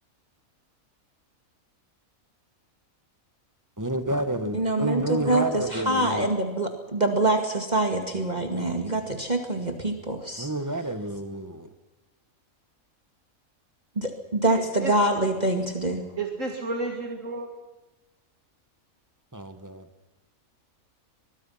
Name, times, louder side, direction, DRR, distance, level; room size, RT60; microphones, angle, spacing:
voice 1, 3.8-6.3 10.4-11.7 19.3-19.9, right 1 dB, 15° right, 9 dB, 1.6 m, -29 dB
voice 2, 4.5-10.5 14.0-16.1, right 2 dB, 30° right, 4 dB, 2.3 m, -25 dB
voice 3, 14.5-14.9 16.2-17.5, right 3 dB, 65° right, 3 dB, 2.3 m, -31 dB
24.0 x 22.0 x 5.8 m, 1.1 s
omnidirectional pair, 1.5 m